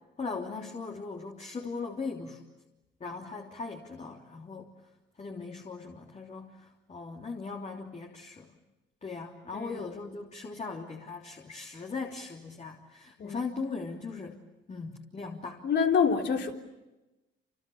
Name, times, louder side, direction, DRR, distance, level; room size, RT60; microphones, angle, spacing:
voice 1, 0.2-2.4 3.0-4.7 5.2-8.5 9.0-14.4 14.7-15.6, left 4 dB, 35° left, 3.2 m, -39 dB
voice 2, 9.5-9.8 13.2-13.4 15.6-16.5, left 6 dB, 60° left, 3.6 m, -26 dB
29.0 x 28.5 x 7.2 m
cardioid pair, 90°, 20 cm